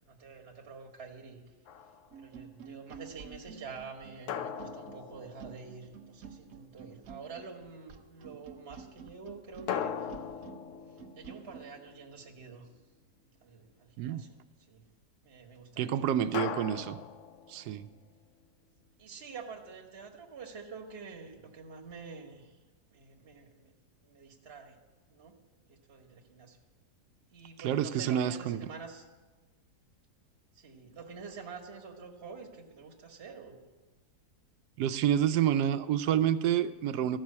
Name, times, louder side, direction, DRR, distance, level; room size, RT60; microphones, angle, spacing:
voice 1, 0.0-1.4 2.1-10.3 10.9-12.7 13.4-14.4 14.7-14.8 15.2-17.0 19.0-22.6 22.9-23.7 24.0-24.8 25.1-25.3 25.7-26.6 27.3-29.0 30.5-33.6, right 5 dB, 40° right, 0 dB, 1.5 m, -47 dB
sound 1, 1.7-2.2 4.3-6.1 9.7-12.3 16.3-18.0, left 8 dB, 60° left, 0.9 m, -39 dB
sound 2, 2.1-11.7, right 6 dB, 65° right, 1.3 m, -50 dB
voice 2, 15.8-17.0 17.5-17.9 27.6-28.6 34.8-37.2, right 10 dB, 85° right, 12 dB, 1.2 m, -28 dB
13.5 x 6.3 x 8.4 m, 1.2 s
omnidirectional pair, 1.7 m